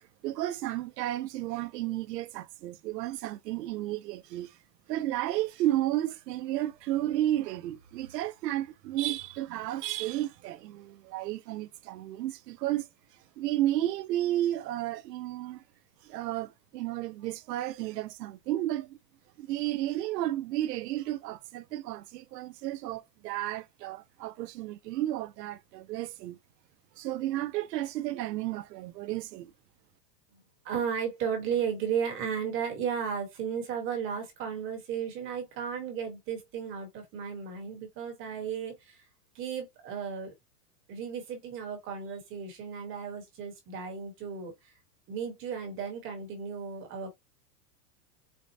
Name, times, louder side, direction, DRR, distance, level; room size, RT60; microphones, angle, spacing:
voice 1, 0.2-4.5 4.9-12.9 13.4-15.6 16.0-19.0 19.4-26.4 27.0-29.5, right 14 dB, 80° right, 0.6 m, -32 dB
voice 2, 30.6-39.0 39.3-40.3 40.9-44.7 45.1-47.1, right 7 dB, 25° right, 1.0 m, -34 dB
4.3 x 2.0 x 2.5 m
supercardioid pair, 150°, 48 cm